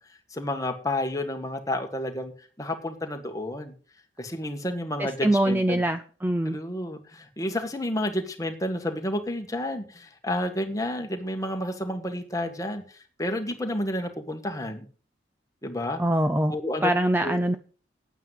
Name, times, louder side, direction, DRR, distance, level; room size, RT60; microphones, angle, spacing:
voice 1, 0.3-3.7 4.2-5.8 6.4-14.8 15.6-16.0 16.5-16.9 17.2-17.6, left 1 dB, 20° left, 5 dB, 1.7 m, -30 dB
voice 2, 5.0-6.6 16.0-16.5 16.8-17.6, right 1 dB, 10° right, 9 dB, 0.5 m, -23 dB
9.4 x 9.1 x 7.5 m, 0.41 s
head